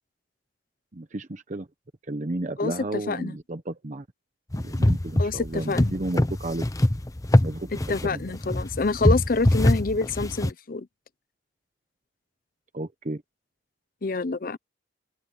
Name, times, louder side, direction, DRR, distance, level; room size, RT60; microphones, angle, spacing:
voice 1, 0.9-1.7 2.1-4.0 4.5-6.6 7.4-7.7 8.0-8.2 12.7-13.2, right 1 dB, 45° right, 0.9 m, -32 dB
voice 2, 2.6-3.4 5.2-5.9 7.7-10.9 14.0-14.6, left 3 dB, 50° left, 0.7 m, -27 dB
sound 1, 4.5-10.5, left 1 dB, 20° left, 0.8 m, -23 dB
open air
head